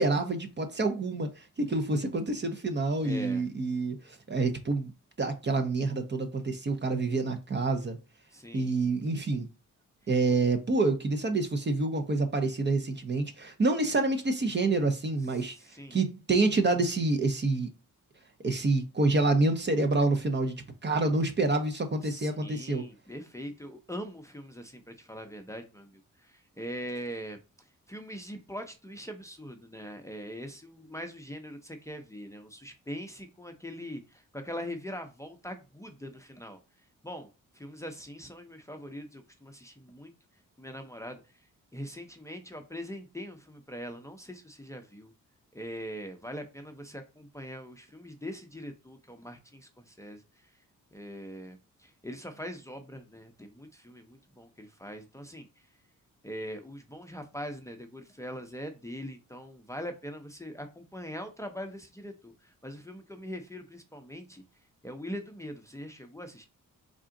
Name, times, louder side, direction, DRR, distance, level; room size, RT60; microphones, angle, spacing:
voice 1, 0.0-4.9 5.2-8.0 8.5-9.5 10.1-15.6 15.9-17.7 18.4-20.5 20.8-22.9, right 3 dB, 30° right, 0.7 m, -27 dB
voice 2, 3.0-3.5 8.3-8.7 10.0-10.1 15.3-16.0 22.0-36.6 37.0-37.3 37.5-40.1 40.6-41.5 41.7-45.1 45.5-50.6 50.9-55.7 56.2-64.4 64.8-66.5, equal, 10° left, 0.6 m, -42 dB
3.7 x 2.4 x 3.7 m
cardioid pair, 70°, 33 cm